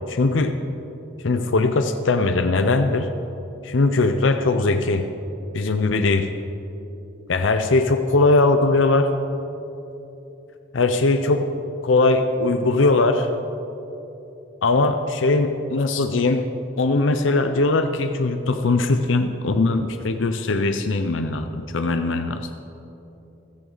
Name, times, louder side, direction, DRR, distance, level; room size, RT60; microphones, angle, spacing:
voice 1, 0.1-0.6 1.2-3.1 3.6-5.1 5.5-6.3 7.3-9.1 10.7-11.5 11.8-13.3 14.6-16.5 16.8-22.5, left 3 dB, 90° left, 7 dB, 0.6 m, -20 dB
15.5 x 14.0 x 4.0 m, 3.0 s
head